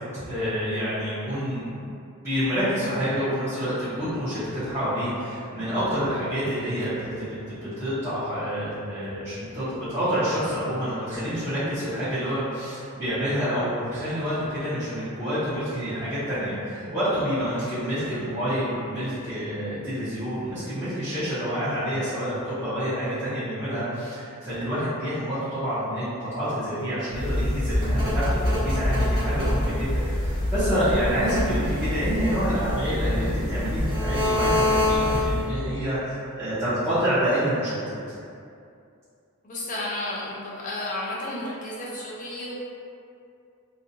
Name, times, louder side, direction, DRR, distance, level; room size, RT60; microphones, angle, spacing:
voice 1, 0.3-1.9 2.2-37.9, equal, 10° right, -17 dB, 0.7 m, -28 dB
sound 1, 27.1-35.5, left 1 dB, 45° right, 1.2 m, -25 dB
voice 2, 39.4-42.5, left 1 dB, 35° left, -6 dB, 0.5 m, -32 dB
2.6 x 2.1 x 2.6 m, 2.5 s
head